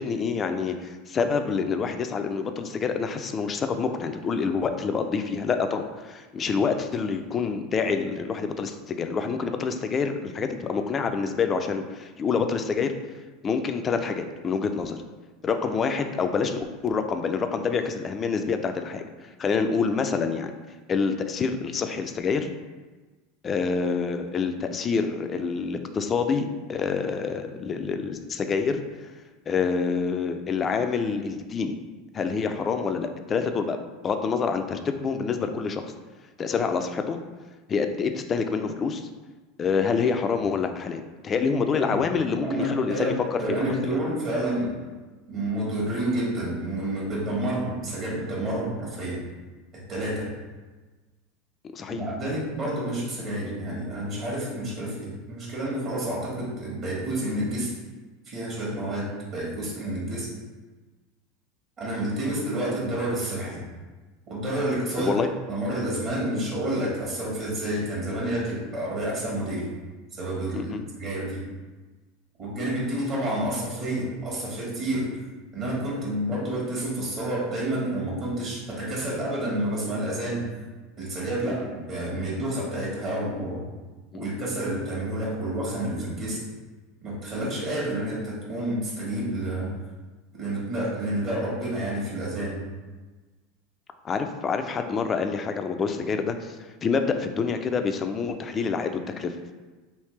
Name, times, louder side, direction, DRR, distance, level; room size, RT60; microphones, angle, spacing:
voice 1, 0.0-12.9 13.4-15.0 15.4-20.5 20.9-22.5 23.4-28.8 29.5-31.7 32.1-35.9 36.4-37.2 37.7-39.0 39.6-43.4 43.8-44.0 51.7-52.0 64.9-65.3 68.1-68.2 70.5-70.8 81.4-81.6 84.1-84.3 94.0-99.3, left 5 dB, 30° left, 7 dB, 0.3 m, -27 dB
voice 2, 42.4-44.8 45.3-49.2 49.7-50.3 51.9-57.7 58.2-60.3 61.8-63.6 64.3-65.1 65.5-69.7 70.1-71.4 72.4-75.2 75.5-80.4 81.0-83.6 84.1-86.4 87.0-89.7 90.3-92.6, right 1 dB, 40° right, -6 dB, 1.3 m, -29 dB
3.3 x 2.7 x 3.1 m, 1.3 s
supercardioid pair, 120°, 0 cm